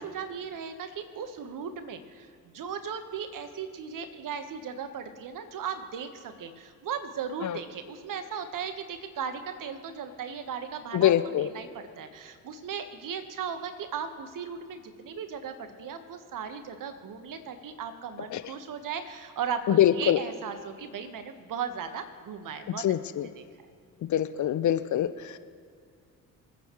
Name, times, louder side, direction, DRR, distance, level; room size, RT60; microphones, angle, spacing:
voice 1, 0.0-11.1 11.4-22.9 23.4-23.5, right 7 dB, 50° right, 9 dB, 1.3 m, -37 dB
voice 2, 10.9-11.5 18.3-18.4 19.7-20.2 22.8-23.3 24.1-25.4, left 11 dB, 45° left, 12 dB, 0.7 m, -24 dB
25.0 x 8.4 x 3.1 m, 2.3 s
hypercardioid pair, 50°, 41 cm